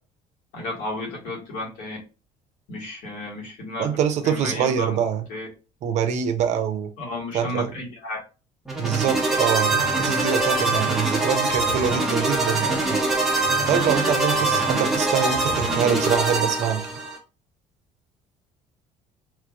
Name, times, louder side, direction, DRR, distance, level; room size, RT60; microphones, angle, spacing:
voice 1, 0.5-2.0 2.7-3.9 4.2-5.0 5.3-5.5 7.0-8.2, left 2 dB, 70° left, -3 dB, 1.9 m, -32 dB
voice 2, 3.8-5.3 5.8-6.9 7.3-7.8 8.8-13.0 13.7-16.9, right 8 dB, 55° right, 9 dB, 0.6 m, -24 dB
sound 1, 8.7-17.2, right 2 dB, 5° right, 1.0 m, -23 dB
3.2 x 3.1 x 2.5 m, 0.32 s
cardioid pair, 125°, 14 cm